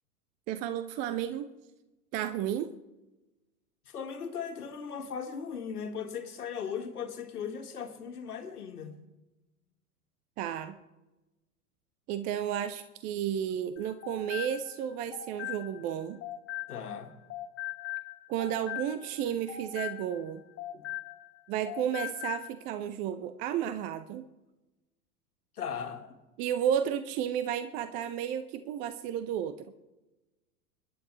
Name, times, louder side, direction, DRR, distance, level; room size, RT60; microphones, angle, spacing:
voice 1, 0.5-1.5 2.1-2.7 10.4-10.8 12.1-16.2 18.3-20.4 21.5-24.2 26.4-29.7, right 9 dB, 20° right, 12 dB, 0.4 m, -32 dB
voice 2, 3.9-8.9 16.7-17.1 20.7-20.8 25.6-26.2, left 7 dB, 75° left, 5 dB, 1.8 m, -38 dB
sound 1, 13.8-17.0 17.3-21.4 21.7-22.5, left 14 dB, 25° left, 1.3 m, -40 dB
26.0 x 11.0 x 3.2 m, 1.0 s
figure-of-eight pair, 95°, 46 cm